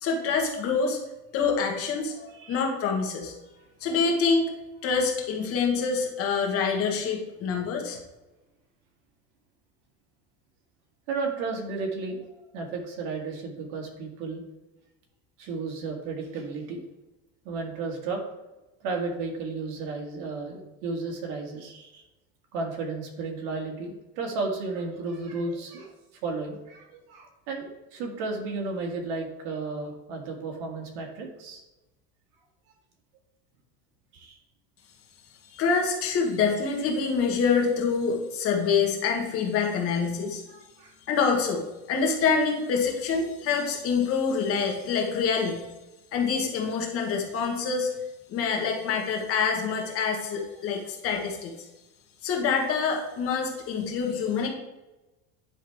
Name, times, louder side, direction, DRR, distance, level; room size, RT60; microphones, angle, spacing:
voice 1, 0.0-1.0 1.3-3.4 3.8-4.5 4.8-8.0 35.5-40.4 41.1-45.6 46.1-47.9 48.3-51.5 52.2-54.5, left 5 dB, 40° left, 1 dB, 1.6 m, -26 dB
voice 2, 11.1-14.4 15.4-16.8 17.4-18.2 18.8-22.0 22.5-25.9 26.2-31.6 34.1-34.4 40.5-40.9, right 3 dB, 65° right, 1 dB, 2.0 m, -33 dB
10.5 x 3.6 x 4.6 m, 1.0 s
cardioid pair, 150°, 34 cm